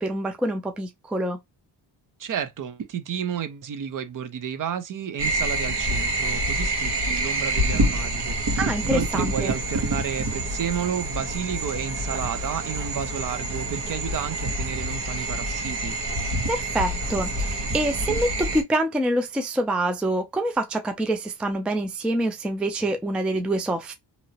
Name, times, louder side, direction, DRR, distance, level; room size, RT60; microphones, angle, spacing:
voice 1, 0.0-1.4 8.6-9.5 16.5-23.9, right 1 dB, 5° right, 0.3 m, -26 dB
voice 2, 2.2-16.0, right 8 dB, 50° right, 0.7 m, -31 dB
sound 1, 5.2-18.6, right 1 dB, 85° right, 1.5 m, -27 dB
2.8 x 2.8 x 2.7 m
cardioid pair, 150°, 41 cm